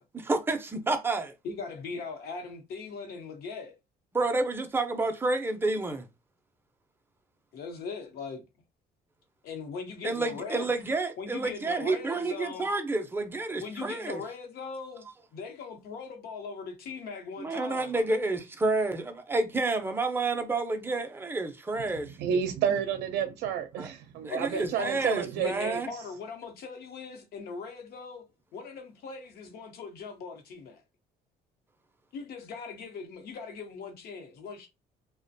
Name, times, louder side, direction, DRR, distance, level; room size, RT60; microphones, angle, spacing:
voice 1, 0.3-1.3 4.1-6.1 10.0-14.2 17.4-22.2 23.8-23.9 24.2-25.9, right 3 dB, 15° right, 0.5 m, -29 dB
voice 2, 1.4-3.7 7.5-8.4 9.4-10.7 11.2-12.7 13.6-15.1 15.3-17.9 22.7-22.8 24.3-24.9 25.4-28.2 28.5-30.8 32.1-34.7, left 5 dB, 70° left, 0.8 m, -40 dB
voice 3, 22.2-25.8, right 8 dB, 80° right, 0.5 m, -30 dB
2.4 x 2.1 x 2.6 m
cardioid pair, 110°, 17 cm